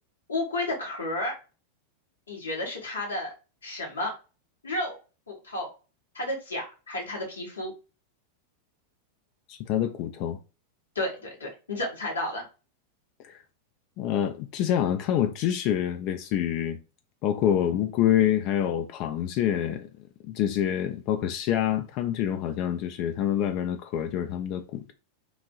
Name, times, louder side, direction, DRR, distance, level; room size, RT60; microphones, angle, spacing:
voice 1, 0.3-1.3 2.3-3.3 3.6-4.1 4.6-5.0 5.3-5.7 6.1-7.7 10.9-12.4, left 1 dB, 75° left, 1.2 m, -32 dB
voice 2, 9.5-10.4 13.2-13.4 14.0-16.8 17.2-19.9 20.2-24.9, left 10 dB, 40° left, 0.3 m, -26 dB
3.1 x 2.6 x 2.3 m
figure-of-eight pair, 90°, 0 cm